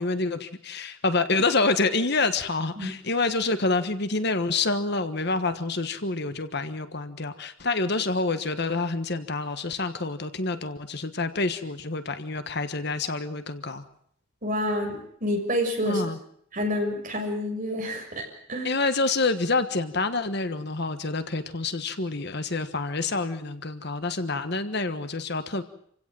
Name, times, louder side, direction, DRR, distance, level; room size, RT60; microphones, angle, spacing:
voice 1, 0.0-13.9 15.9-16.2 18.6-25.6, left 3 dB, 50° left, 10 dB, 1.4 m, -27 dB
voice 2, 14.4-16.0 16.5-18.7, left 1 dB, 40° right, 1 dB, 6.7 m, -28 dB
27.5 x 16.5 x 7.7 m, 0.68 s
head